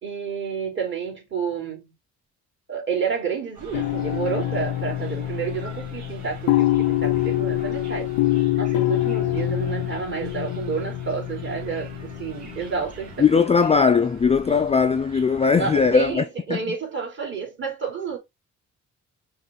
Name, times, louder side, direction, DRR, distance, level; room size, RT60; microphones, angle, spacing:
voice 1, 0.0-1.9 2.7-8.1 8.6-13.4 15.5-18.2, right 6 dB, 40° right, 3.1 m, -30 dB
sound 1, 3.5-16.2, right 4 dB, 65° right, 2.2 m, -43 dB
sound 2, 3.7-12.8, left 15 dB, 90° left, 0.4 m, -25 dB
voice 2, 13.2-16.7, left 6 dB, 20° left, 0.3 m, -19 dB
5.5 x 2.5 x 3.8 m
cardioid pair, 90°, 30 cm